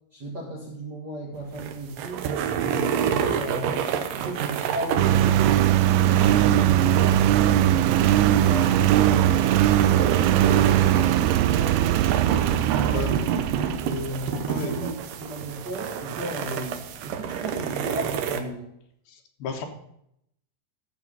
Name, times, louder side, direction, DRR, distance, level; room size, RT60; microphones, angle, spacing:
voice 1, 0.1-2.3 2.6-3.9 4.2-5.8 6.1-11.1 11.4-13.2 13.8-18.7, right 1 dB, 40° right, -3 dB, 1.6 m, -36 dB
sound 1, 1.4-18.4, right 8 dB, 70° right, 2.4 m, -29 dB
Engine, 5.0-14.4, right 12 dB, 85° right, 2.6 m, -20 dB
voice 2, 14.5-14.8 19.1-19.7, left 6 dB, 75° left, 4 dB, 3.3 m, -33 dB
14.5 x 7.7 x 5.4 m, 0.73 s
omnidirectional pair, 4.4 m